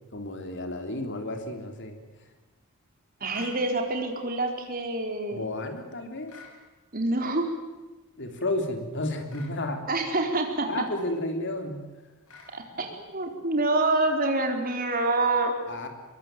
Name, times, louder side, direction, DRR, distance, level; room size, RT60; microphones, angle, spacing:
voice 1, 0.1-2.0 5.3-6.4 8.2-9.8 10.7-11.9 15.7-15.9, left 1 dB, 55° left, 5 dB, 3.6 m, -32 dB
voice 2, 3.2-5.5 6.9-7.5 9.9-10.8 12.5-15.5, right 2 dB, 40° right, 4 dB, 4.2 m, -26 dB
sound 1, 3.3-3.6 6.3-6.6 9.3-9.6 12.3-12.6, left 4 dB, 85° left, 6.8 m, -48 dB
24.5 x 22.0 x 9.3 m, 1.2 s
head